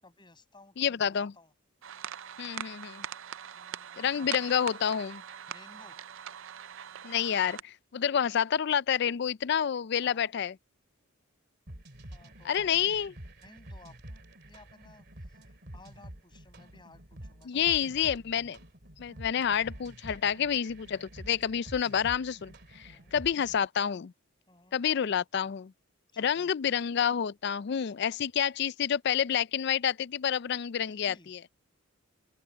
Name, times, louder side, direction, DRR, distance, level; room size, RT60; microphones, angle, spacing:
voice 1, 0.0-1.5 3.5-4.6 5.5-6.0 10.0-10.3 12.1-13.0 13.4-14.0 14.5-18.1 22.9-23.2 24.5-24.8 26.1-26.5 30.9-31.5, left 2 dB, 20° left, 7.1 m, -57 dB
voice 2, 0.8-1.3 2.4-3.0 4.0-5.2 7.0-10.5 12.5-13.1 17.5-18.6 19.0-24.1 24.7-25.7 26.2-31.4, left 8 dB, 55° left, 0.4 m, -29 dB
sound 1, 1.8-7.6, right 9 dB, 70° right, 0.5 m, -42 dB
sound 2, 11.7-23.7, right 1 dB, 50° right, 2.4 m, -48 dB
open air
head